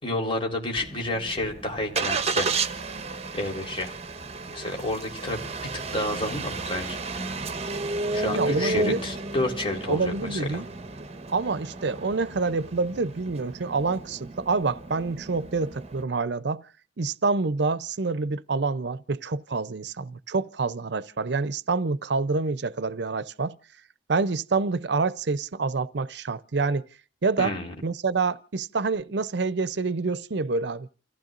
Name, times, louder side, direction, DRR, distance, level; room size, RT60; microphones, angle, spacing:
voice 1, 0.0-2.5 3.3-3.9 4.5-5.5 5.7-7.0 8.1-10.6 27.4-27.7, left 1 dB, 30° left, 4.1 m, -30 dB
Engine starting, 0.8-16.0, right 3 dB, 35° right, 1.2 m, -33 dB
voice 2, 8.3-9.0 9.9-10.7 11.3-16.6 17.0-23.6 24.1-26.8 27.2-27.5 27.8-30.9, right 4 dB, 65° right, 0.6 m, -27 dB
29.0 x 15.0 x 2.5 m
head